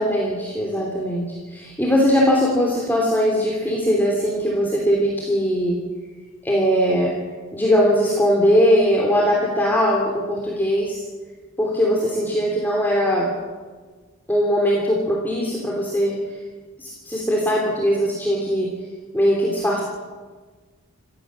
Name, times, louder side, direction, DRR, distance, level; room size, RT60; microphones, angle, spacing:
voice 1, 0.0-5.8 6.4-7.1 7.5-11.0 11.6-13.3 14.3-16.2 16.8-18.7 19.1-19.8, equal, 10° left, -2 dB, 3.2 m, -20 dB
28.5 x 15.0 x 7.6 m, 1.4 s
head